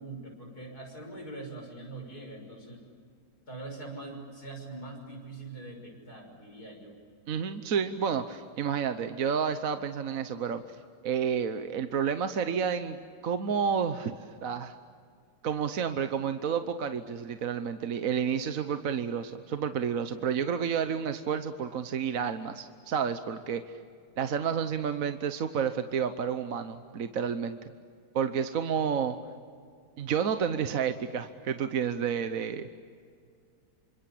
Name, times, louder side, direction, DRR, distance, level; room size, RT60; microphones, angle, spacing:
voice 1, 0.0-2.8 3.5-7.0, right 2 dB, 65° left, 2 dB, 6.6 m, -43 dB
voice 2, 7.3-10.6 11.0-14.7 15.4-23.6 24.2-27.6 28.1-29.2 30.0-32.7, right 7 dB, 60° right, 9 dB, 1.3 m, -30 dB
27.5 x 26.0 x 8.4 m, 2.2 s
omnidirectional pair, 1.8 m